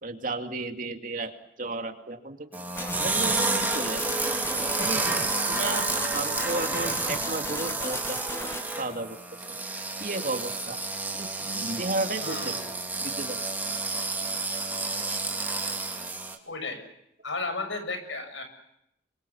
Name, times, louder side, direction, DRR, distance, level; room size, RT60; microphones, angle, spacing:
voice 1, 0.0-2.4 3.0-4.2 4.8-5.2 5.5-5.9 6.1-8.5 8.8-9.2 10.0-10.8 11.1-12.6 13.0-13.4, right 2 dB, 45° right, 5 dB, 2.5 m, -33 dB
sound 1, 2.5-16.3, right 3 dB, 10° right, 3.0 m, -30 dB
sound 2, 2.7-8.6, left 2 dB, 15° left, 1.5 m, -37 dB
voice 2, 12.2-12.7 16.5-16.8 17.2-18.4, left 3 dB, 85° left, 8 dB, 6.8 m, -34 dB
27.0 x 23.5 x 7.1 m, 0.80 s
head